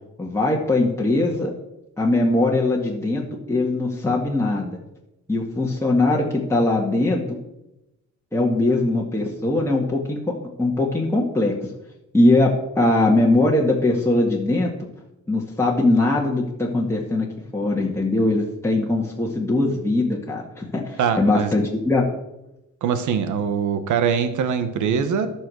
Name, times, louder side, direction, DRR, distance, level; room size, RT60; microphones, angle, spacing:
voice 1, 0.2-1.5 2.0-3.2 3.5-4.8 5.3-6.2 6.5-7.2 8.3-10.2 10.6-11.5 12.1-14.7 15.3-17.3 17.5-22.0, left 2 dB, 10° left, -3 dB, 1.9 m, -21 dB
voice 2, 21.0-21.5 22.8-25.3, right 7 dB, 75° right, 10 dB, 1.3 m, -22 dB
11.5 x 6.2 x 6.3 m, 0.91 s
cardioid pair, 90°, 30 cm